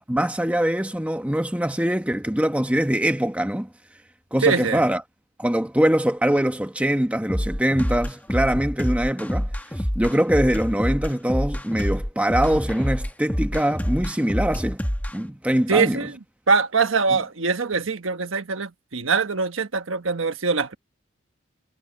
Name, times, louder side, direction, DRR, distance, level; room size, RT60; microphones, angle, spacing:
voice 1, 0.1-3.7 4.3-5.0 5.4-9.5 9.8-14.8 15.1-16.0, right 1 dB, 5° right, 1.1 m, -23 dB
voice 2, 4.4-4.8 15.7-16.1 16.5-20.8, right 5 dB, 85° right, 1.3 m, -23 dB
sound 1, 7.3-15.2, equal, 10° left, 1.5 m, -26 dB
head